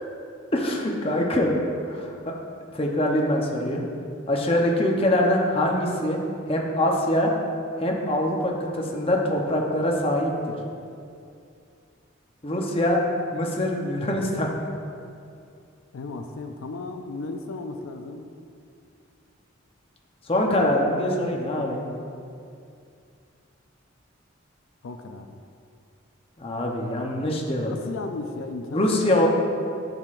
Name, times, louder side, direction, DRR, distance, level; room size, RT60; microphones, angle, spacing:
voice 1, 0.5-1.5 1.9-2.3 2.7-3.8 4.3-6.2 6.5-7.3 7.8-10.5 12.4-13.0 13.3-14.5 20.3-21.9 26.4-27.7 28.7-29.3, left 1 dB, 30° left, 0 dB, 0.8 m, -24 dB
voice 2, 15.9-18.3 24.8-25.4 27.7-28.9, left 3 dB, 85° left, 6 dB, 0.5 m, -35 dB
10.5 x 6.5 x 2.5 m, 2.4 s
head